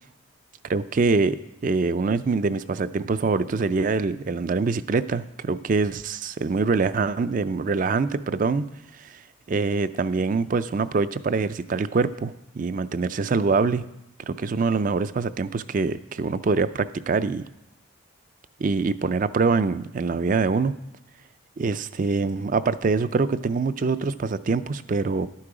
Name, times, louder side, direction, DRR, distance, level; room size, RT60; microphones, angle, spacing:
voice 1, 0.7-1.4 1.6-8.6 9.0-9.2 9.5-13.9 14.3-17.4 18.6-20.7 21.6-25.3, right 4 dB, 40° right, 14 dB, 0.3 m, -24 dB
12.0 x 8.5 x 4.9 m, 0.88 s
head